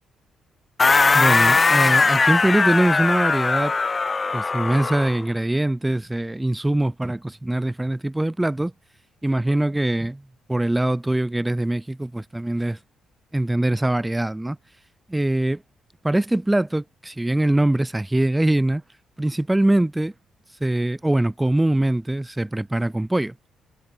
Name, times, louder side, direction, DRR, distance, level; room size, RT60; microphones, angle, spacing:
sound 1, 0.8-5.2, left 4 dB, 30° left, 5.2 m, -19 dB
voice 1, 1.1-3.8 4.3-8.7 9.2-12.8 13.3-14.6 15.1-15.6 16.0-18.8 19.2-20.1 20.6-23.3, right 1 dB, 10° right, 4.9 m, -22 dB
cardioid pair, 90°, 0 cm